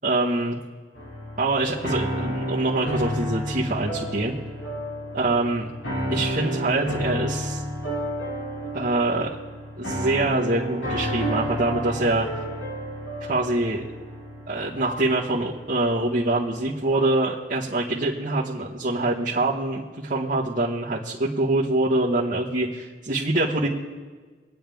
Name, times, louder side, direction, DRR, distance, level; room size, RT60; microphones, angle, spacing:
voice 1, 0.0-0.6 1.4-4.3 5.1-5.7 6.1-7.6 8.7-9.3 9.8-12.3 13.2-13.8 14.5-23.7, right 2 dB, 45° right, -8 dB, 1.3 m, -24 dB
sound 1, 1.0-17.2, equal, 85° left, 3.2 m, -31 dB
25.5 x 9.2 x 3.5 m, 1.4 s
head